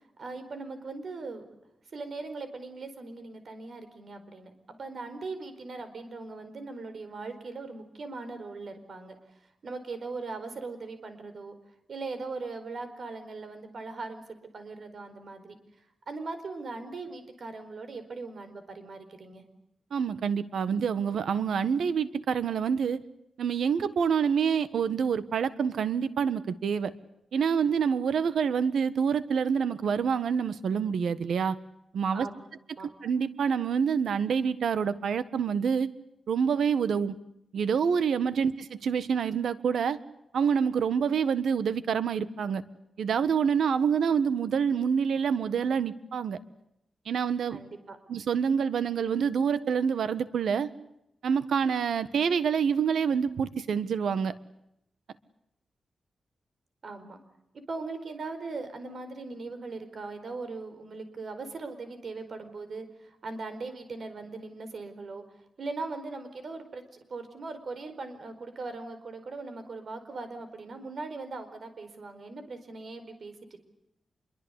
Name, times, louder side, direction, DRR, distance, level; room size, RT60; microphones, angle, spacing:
voice 1, 0.2-1.5 1.9-9.2 9.6-11.6 11.9-14.2 14.5-15.6 16.1-19.4 32.1-32.4 32.8-32.9 47.5-48.0 56.8-57.2 57.7-65.2 65.6-66.8 67.1-73.6, right 3 dB, 50° right, 9 dB, 4.6 m, -39 dB
voice 2, 19.9-23.0 23.4-26.9 27.3-31.6 31.9-32.3 33.0-35.9 36.3-37.1 37.5-40.0 40.3-42.6 43.0-46.4 47.0-47.6 48.1-50.7 51.2-54.3, right 7 dB, 90° right, 14 dB, 1.5 m, -27 dB
26.5 x 23.0 x 8.3 m, 0.80 s
wide cardioid pair, 160°, 0 cm